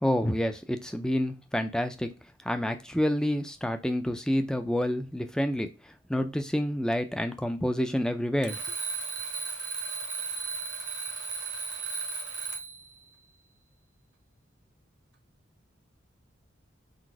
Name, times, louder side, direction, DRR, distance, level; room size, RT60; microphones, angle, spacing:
voice 1, 0.0-2.1 2.4-5.7 6.1-8.6, equal, 5° left, 0.4 m, -28 dB
Alarm, 8.4-12.9, right 4 dB, 65° right, 1.0 m, -35 dB
4.0 x 2.5 x 4.6 m
head